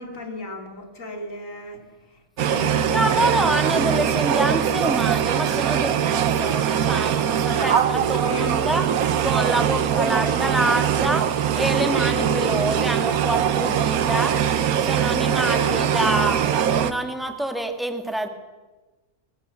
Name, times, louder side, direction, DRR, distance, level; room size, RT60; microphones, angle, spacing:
voice 1, 0.0-1.8 2.1-3.4 7.6-8.6 12.1-12.6 15.3-15.9, left 1 dB, 60° left, 4 dB, 3.3 m, -33 dB
sound 1, 2.4-16.9, right 9 dB, 75° right, 1.4 m, -22 dB
voice 2, 2.9-14.4 14.8-18.3, right 1 dB, ahead, 5 dB, 2.1 m, -26 dB
22.0 x 21.0 x 7.1 m, 1.2 s
omnidirectional pair, 1.5 m